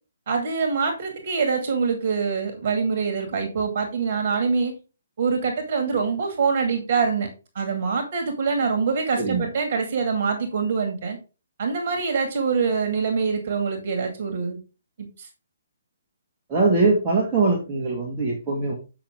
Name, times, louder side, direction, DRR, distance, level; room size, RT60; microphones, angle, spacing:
voice 1, 0.3-4.7 5.2-7.3 7.6-11.2 11.6-14.6 15.0-15.3, right 5 dB, 50° right, 5 dB, 2.2 m, -24 dB
voice 2, 9.2-9.5 16.5-18.7, right 3 dB, 20° right, -3 dB, 2.1 m, -22 dB
8.3 x 6.1 x 3.6 m, 0.31 s
figure-of-eight pair, 135°, 0 cm